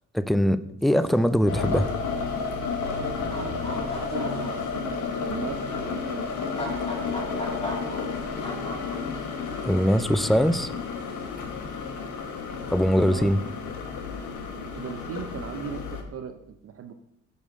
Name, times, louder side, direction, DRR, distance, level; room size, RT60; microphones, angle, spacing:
voice 1, 0.1-1.9 9.6-10.7 12.7-13.4, equal, ahead, 13 dB, 0.4 m, -22 dB
sound 1, 0.8-1.2 1.6-2.0 2.8-3.0 3.3-4.7 5.6-5.7 6.3-9.2 9.5-10.1 11.0-11.3, left 1 dB, 20° left, 2.5 m, -38 dB
sound 2, 1.5-16.0, left 5 dB, 75° left, 1.4 m, -31 dB
voice 2, 3.3-6.3 6.6-6.8 13.1-13.3 14.7-16.9, right 7 dB, 50° right, 6 dB, 0.7 m, -38 dB
6.6 x 5.5 x 6.3 m, 0.79 s
cardioid pair, 90°, 30 cm